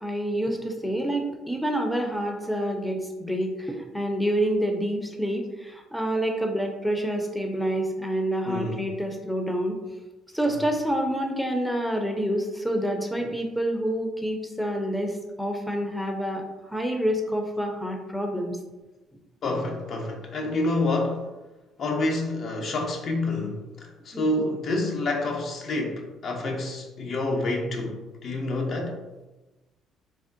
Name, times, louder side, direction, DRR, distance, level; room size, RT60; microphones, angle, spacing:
voice 1, 0.0-9.8 10.3-16.4 16.7-18.6 24.1-24.2, equal, ahead, 2 dB, 0.4 m, -27 dB
voice 2, 8.5-8.8 10.5-10.6 13.2-13.3 19.4-21.3 21.8-29.0, left 2 dB, 55° left, 2 dB, 0.5 m, -28 dB
3.4 x 2.1 x 2.5 m, 1.1 s
supercardioid pair, 80°, 0 cm